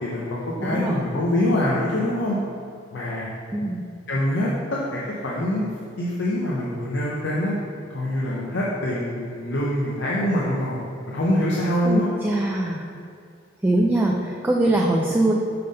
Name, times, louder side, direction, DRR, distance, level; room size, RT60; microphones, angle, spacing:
voice 1, 0.0-2.4 2.9-3.3 4.1-5.7 6.0-7.6 7.9-12.1, left 1 dB, 65° left, -5 dB, 0.7 m, -24 dB
voice 2, 0.6-1.0 3.5-3.8 11.8-12.8 13.6-15.3, right 1 dB, 10° right, -2 dB, 0.3 m, -22 dB
5.7 x 3.7 x 5.1 m, 2.4 s
head